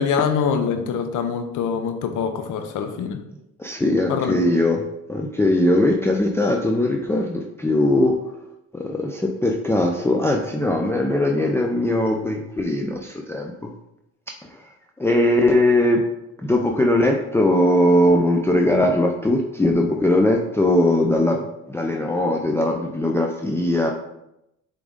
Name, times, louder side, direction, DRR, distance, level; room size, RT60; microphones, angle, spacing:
voice 1, 0.0-3.2 4.1-4.4, left 6 dB, 90° left, 7 dB, 0.8 m, -24 dB
voice 2, 3.6-8.2 8.7-13.7 14.5-16.1 16.4-23.9, left 1 dB, 10° left, 1 dB, 0.5 m, -20 dB
7.1 x 3.8 x 3.6 m, 0.86 s
cardioid pair, 90°, 30 cm